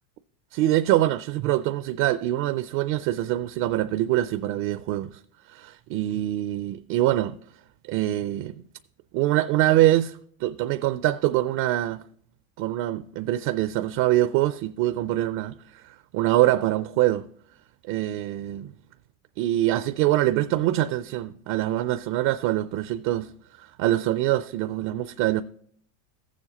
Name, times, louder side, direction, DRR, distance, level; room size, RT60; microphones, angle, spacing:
voice 1, 0.5-5.2 5.5-7.4 7.9-8.6 9.1-12.0 12.6-17.3 17.9-18.7 19.4-23.3 23.6-25.4, right 14 dB, 55° right, 0.5 m, -24 dB
14.5 x 7.3 x 2.9 m
supercardioid pair, 115°, 40 cm